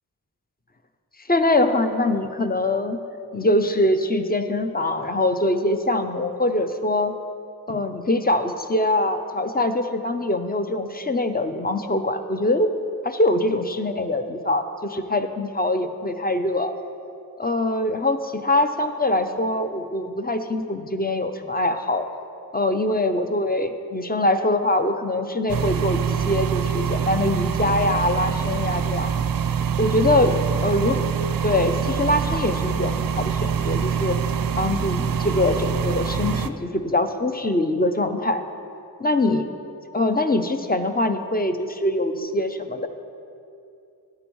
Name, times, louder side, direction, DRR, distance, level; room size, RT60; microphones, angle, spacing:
voice 1, 1.3-3.0 3.3-7.2 7.7-12.7 13.0-16.7 17.4-22.1 22.5-29.1 29.8-31.0 31.4-34.2 34.6-38.4 39.0-39.5 39.9-42.9, left 1 dB, 25° left, 8 dB, 0.6 m, -23 dB
sound 1, 25.5-36.5, right 7 dB, 60° right, 0.5 m, -25 dB
12.0 x 8.7 x 3.1 m, 2.6 s
wide cardioid pair, 50°, 39 cm